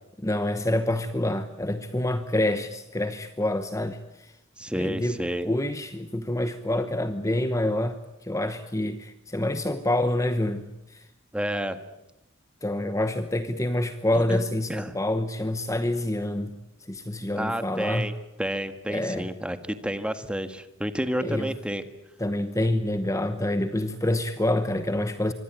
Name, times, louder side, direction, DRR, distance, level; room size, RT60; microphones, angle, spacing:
voice 1, 0.2-4.3 4.7-11.1 12.6-16.6 16.9-18.1 18.9-19.3 21.2-21.5 22.2-25.3, left 1 dB, 15° left, 10 dB, 1.0 m, -27 dB
voice 2, 4.6-5.5 11.3-11.8 14.1-14.4 14.7-14.9 17.3-21.8, equal, 5° right, 9 dB, 1.6 m, -30 dB
25.0 x 24.0 x 9.0 m, 0.90 s
head